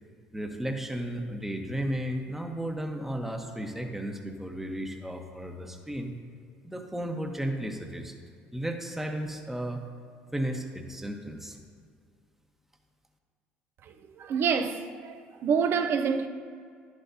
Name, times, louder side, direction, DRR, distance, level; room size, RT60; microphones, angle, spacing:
voice 1, 0.3-6.1 6.6-8.1 8.5-9.9 10.3-11.6, right 1 dB, 5° right, 1.0 m, -34 dB
voice 2, 14.2-16.3, right 6 dB, 55° right, 0.6 m, -27 dB
11.0 x 8.1 x 2.8 m
hypercardioid pair, 60°, 5 cm